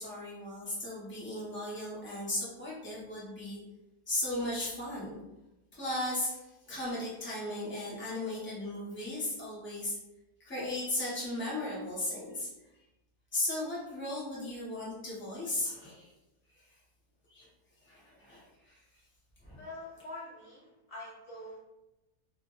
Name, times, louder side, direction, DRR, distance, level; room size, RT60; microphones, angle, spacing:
voice 1, 0.0-3.6 4.1-5.1 5.7-6.4 6.7-10.0 10.4-12.5 13.3-16.1 17.3-17.5 17.9-18.8 19.4-19.6, left 1 dB, 15° left, -7 dB, 0.5 m, -36 dB
voice 2, 19.6-21.6, left 2 dB, 85° left, -6 dB, 0.5 m, -45 dB
2.7 x 2.1 x 3.0 m, 0.96 s
omnidirectional pair, 1.7 m